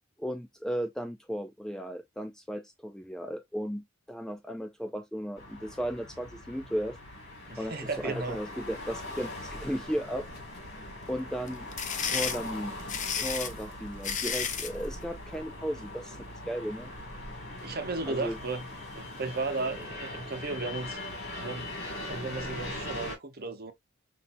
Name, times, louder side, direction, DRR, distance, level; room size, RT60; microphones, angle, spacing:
voice 1, 0.2-7.0 7.6-10.3 11.1-11.7 12.1-12.8 13.2-16.9 18.1-18.4, equal, 5° left, 0.4 m, -35 dB
sound 1, 5.4-23.2, left 1 dB, 55° left, 2.0 m, -41 dB
voice 2, 7.5-8.4 17.6-18.7 18.9-21.0 21.4-21.7 22.0-23.7, right 3 dB, 50° right, 0.9 m, -34 dB
sound 2, 11.5-14.8, left 7 dB, 35° left, 0.7 m, -32 dB
5.8 x 2.6 x 2.6 m
head